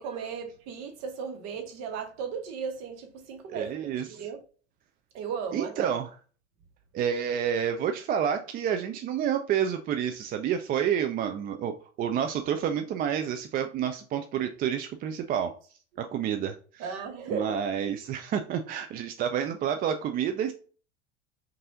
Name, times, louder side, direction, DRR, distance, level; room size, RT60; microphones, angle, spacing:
voice 1, 0.0-4.4 5.1-5.9 16.8-17.6, right 6 dB, 45° right, 1.2 m, -36 dB
voice 2, 3.5-4.2 5.5-6.1 6.9-15.6 16.0-17.0 17.3-20.5, right 8 dB, 25° right, 0.4 m, -29 dB
5.3 x 2.7 x 3.6 m
figure-of-eight pair, 70°, 35 cm